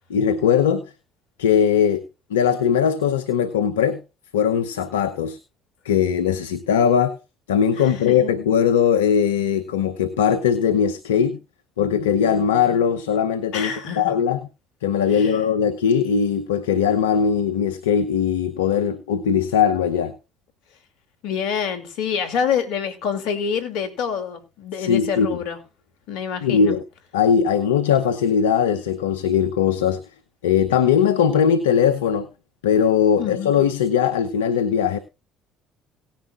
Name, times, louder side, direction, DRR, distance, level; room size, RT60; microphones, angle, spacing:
voice 1, 0.1-0.9 1.4-2.0 2.3-4.0 4.3-5.4 5.8-7.2 7.5-11.4 11.8-13.7 14.0-14.4 14.8-20.1 24.8-25.4 26.4-26.8 27.1-30.0 30.4-32.3 32.6-35.0, left 7 dB, 90° left, 0.8 m, -20 dB
voice 2, 7.8-8.3 13.5-14.1 15.1-15.4 21.2-25.6 26.1-26.7 33.2-33.5, left 7 dB, 75° left, 2.7 m, -27 dB
18.0 x 10.5 x 2.5 m
hypercardioid pair, 65°, 0 cm